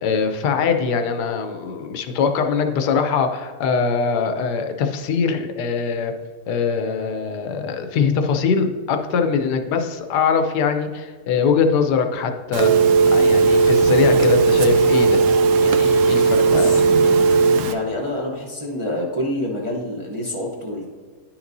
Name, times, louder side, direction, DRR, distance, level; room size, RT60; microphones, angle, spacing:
voice 1, 0.0-6.1 6.5-15.3 15.6-16.7 17.0-17.1, left 5 dB, 85° left, 6 dB, 1.3 m, -22 dB
Telephone, 12.5-17.7, right 4 dB, 70° right, 0.8 m, -16 dB
voice 2, 16.4-16.8 17.6-20.9, left 1 dB, 30° right, -3 dB, 0.6 m, -27 dB
10.0 x 5.9 x 2.6 m, 1.5 s
omnidirectional pair, 1.7 m